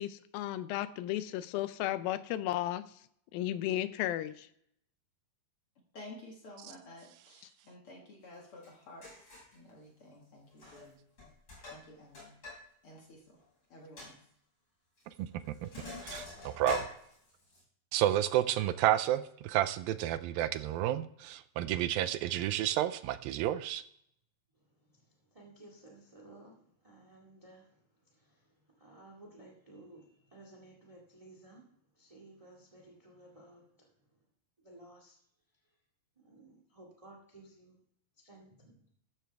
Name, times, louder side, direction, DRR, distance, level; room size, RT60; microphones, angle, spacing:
voice 1, 0.0-2.9 3.3-4.5, left 13 dB, 80° left, 14 dB, 2.4 m, -34 dB
voice 2, 5.9-11.0 11.7-12.4 12.8-13.4 13.7-14.2, left 1 dB, 45° left, 0 dB, 2.0 m, -52 dB
Sink (filling or washing), 8.6-8.7 9.0-9.5 10.5-10.9 11.2-12.6 12.9-13.0 13.4-13.5 14.0-14.1 15.0-15.2 15.4-17.6, left 3 dB, 30° left, 6.8 m, -44 dB
voice 3, 16.0-16.9 17.9-23.8, right 13 dB, 80° right, 13 dB, 2.3 m, -31 dB
voice 4, 24.8-27.8 28.1-31.7 31.9-33.9 34.6-35.2 36.2-37.8 38.2-38.8, right 2 dB, 15° right, 0 dB, 1.2 m, -56 dB
14.0 x 12.0 x 3.5 m, 0.70 s
omnidirectional pair, 4.3 m